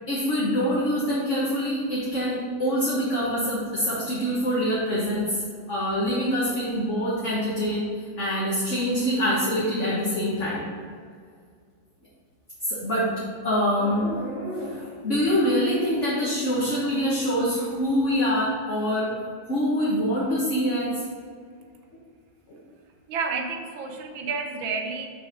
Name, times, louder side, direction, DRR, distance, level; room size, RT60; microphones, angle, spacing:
voice 1, 0.1-7.8 8.2-10.7 12.6-13.1 13.4-19.1 19.5-20.9 22.5-22.6, equal, 40° left, -7 dB, 1.6 m, -25 dB
voice 2, 23.1-25.1, right 4 dB, 80° right, 3 dB, 1.7 m, -30 dB
6.4 x 5.0 x 6.0 m, 2.1 s
omnidirectional pair, 2.2 m